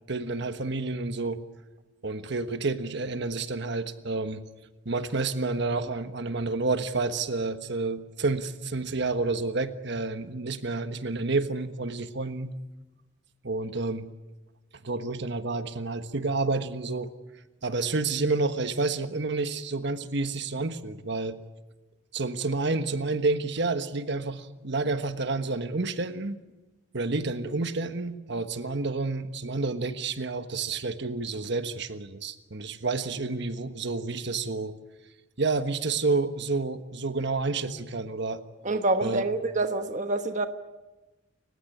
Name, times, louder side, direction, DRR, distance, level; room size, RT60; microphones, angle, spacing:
voice 1, 0.1-1.4 2.0-4.4 4.8-12.5 13.4-14.1 14.8-17.1 17.6-21.4 22.1-26.4 26.9-34.8 35.4-38.4 39.0-39.3, right 3 dB, 65° right, 1.4 m, -29 dB
voice 2, 38.6-40.5, right 2 dB, 40° right, 1.2 m, -26 dB
30.0 x 16.0 x 9.9 m
head